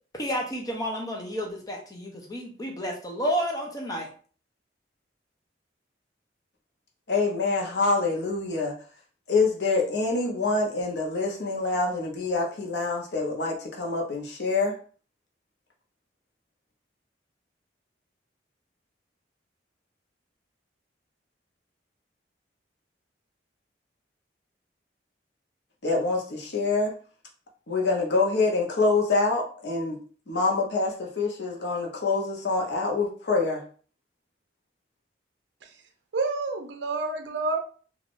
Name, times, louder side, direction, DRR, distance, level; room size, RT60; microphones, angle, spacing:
voice 1, 0.1-4.1, equal, 20° left, 0.6 m, -31 dB
voice 2, 7.1-8.7 9.3-14.8 25.8-27.0 27.7-30.0 30.3-33.6, left 3 dB, 65° left, 0.7 m, -26 dB
voice 3, 36.1-37.6, right 3 dB, 75° right, 0.5 m, -28 dB
3.4 x 2.4 x 2.4 m
head